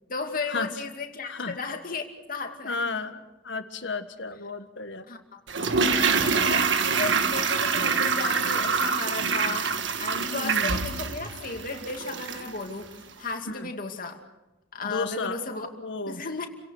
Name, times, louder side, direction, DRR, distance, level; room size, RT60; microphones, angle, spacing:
voice 1, 0.1-2.8 5.1-12.9 13.2-14.2 14.7-15.7 16.1-16.5, left 4 dB, 50° left, 3 dB, 2.5 m, -35 dB
voice 2, 2.4-5.1 5.8-6.3 10.3-10.8 13.5-13.7 14.8-15.4 15.8-16.2, left 3 dB, 75° left, 9 dB, 1.6 m, -33 dB
Toilet flush, 5.5-12.6 12.8-12.9, right 5 dB, 75° right, 1.6 m, -25 dB
29.0 x 17.5 x 6.5 m, 1.0 s
head